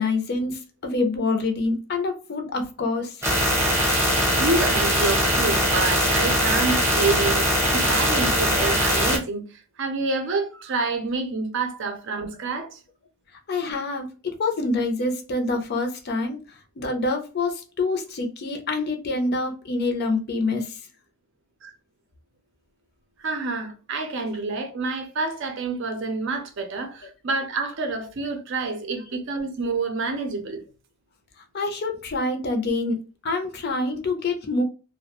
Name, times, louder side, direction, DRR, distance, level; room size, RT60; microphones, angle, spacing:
voice 1, 0.0-3.3 13.5-16.4 16.8-20.8 31.5-34.6, left 3 dB, 45° left, 0.5 m, -26 dB
sound 1, 3.2-9.2, equal, 10° right, 0.8 m, -21 dB
voice 2, 4.4-12.8 21.6-21.7 23.2-30.6, right 3 dB, 55° right, 0.5 m, -28 dB
2.3 x 2.1 x 2.8 m
head